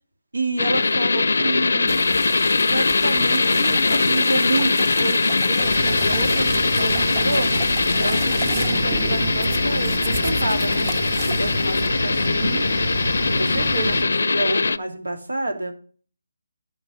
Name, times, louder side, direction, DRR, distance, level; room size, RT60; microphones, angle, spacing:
voice 1, 0.3-2.0 2.7-7.5 8.0-10.9 11.3-12.6 13.3-15.7, right 2 dB, 85° right, 4 dB, 2.8 m, -28 dB
sound 1, 0.6-14.8, left 3 dB, 75° left, 0.5 m, -21 dB
sound 2, 1.9-11.9, right 5 dB, 30° right, 1.1 m, -34 dB
sound 3, 5.6-14.0, right 1 dB, 50° right, 2.4 m, -29 dB
11.5 x 5.4 x 6.3 m, 0.43 s
figure-of-eight pair, 155°, 0 cm